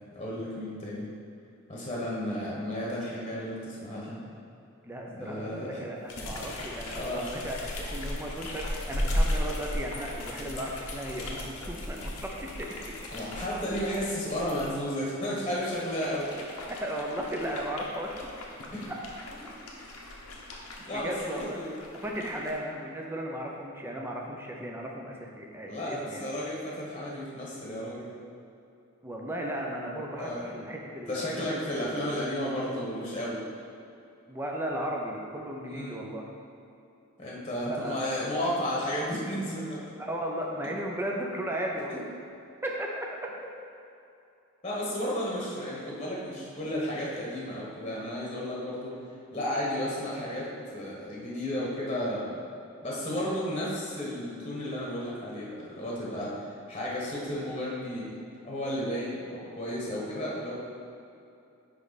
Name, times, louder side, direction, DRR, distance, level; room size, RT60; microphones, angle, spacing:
voice 1, 0.1-1.1 1.7-4.2 5.1-5.8 6.9-7.4 13.1-16.3 18.7-18.8 20.9-21.7 25.7-28.1 30.2-30.5 31.1-33.4 35.7-36.0 37.2-39.8 44.6-48.9 49.3-52.4 52.8-58.1 58.4-60.5, equal, 25° left, -5 dB, 1.1 m, -33 dB
voice 2, 4.8-12.9 16.7-18.3 20.9-21.6 21.9-26.3 29.0-32.0 34.3-36.2 37.7-38.0 40.0-42.0 42.6-43.1, right 1 dB, 10° right, -1 dB, 0.6 m, -35 dB
sound 1, 6.1-14.7 15.3-22.6, left 1 dB, 90° left, 1.0 m, -36 dB
10.0 x 3.4 x 4.1 m, 2.7 s
head